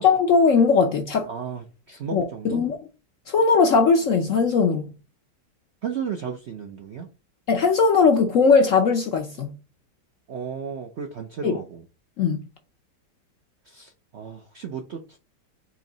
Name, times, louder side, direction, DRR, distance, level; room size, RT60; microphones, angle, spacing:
voice 1, 0.0-1.3 2.1-2.8 3.3-4.9 7.5-9.5 11.4-11.6 12.2-12.4, left 5 dB, 65° left, 0.8 m, -19 dB
voice 2, 1.3-2.6 5.8-7.1 10.3-11.8 13.7-15.2, right 7 dB, 65° right, 0.6 m, -34 dB
4.5 x 3.1 x 3.8 m
omnidirectional pair, 1.9 m